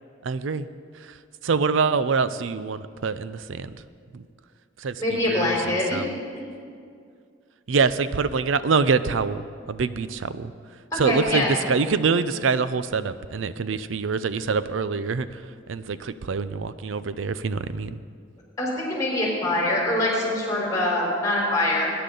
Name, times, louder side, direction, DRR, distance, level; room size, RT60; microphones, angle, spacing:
voice 1, 0.2-0.7 1.0-1.2 1.4-3.8 4.1-4.3 4.8-6.2 7.7-10.5 10.9-15.4 15.7-18.0, right 5 dB, 80° right, 14 dB, 0.5 m, -25 dB
voice 2, 5.0-6.0 6.4-6.5 11.0-11.5 18.6-21.9, left 1 dB, 15° left, -4 dB, 4.1 m, -24 dB
20.0 x 10.0 x 3.9 m, 2.3 s
head